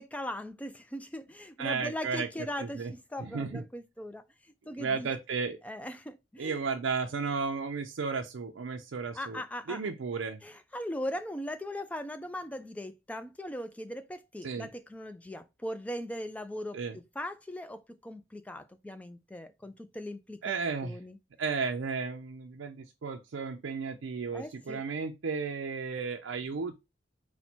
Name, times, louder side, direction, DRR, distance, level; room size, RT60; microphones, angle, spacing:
voice 1, 0.0-4.2 4.7-5.1 5.6-6.6 9.1-9.8 10.4-16.8 17.2-20.5 20.8-21.2 24.3-24.8, left 1 dB, 5° left, 0.3 m, -39 dB
voice 2, 1.6-2.3 2.6-2.9 3.2-3.6 4.8-5.6 6.4-9.4 9.7-10.4 14.4-14.7 16.7-17.0 20.4-21.0 21.4-26.7, right 5 dB, 75° right, 0.4 m, -34 dB
4.2 x 2.1 x 4.3 m
head